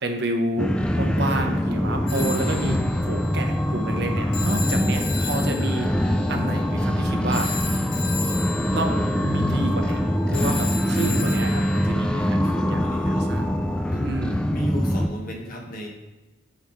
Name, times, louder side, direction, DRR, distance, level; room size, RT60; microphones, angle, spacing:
voice 1, 0.0-2.8 3.0-5.9 6.3-7.5 8.7-10.0 10.3-12.4 12.7-12.8 13.1-13.5 14.0-14.4, right 1 dB, 55° right, 4 dB, 0.9 m, -29 dB
sound 1, 0.6-15.1, equal, 5° left, 0.3 m, -24 dB
Telephone, 2.1-11.9, left 5 dB, 60° left, 1.3 m, -35 dB
voice 2, 12.4-13.3 13.9-14.1 14.5-15.9, equal, 45° left, 0 dB, 1.3 m, -33 dB
8.2 x 3.1 x 5.4 m, 1.1 s
head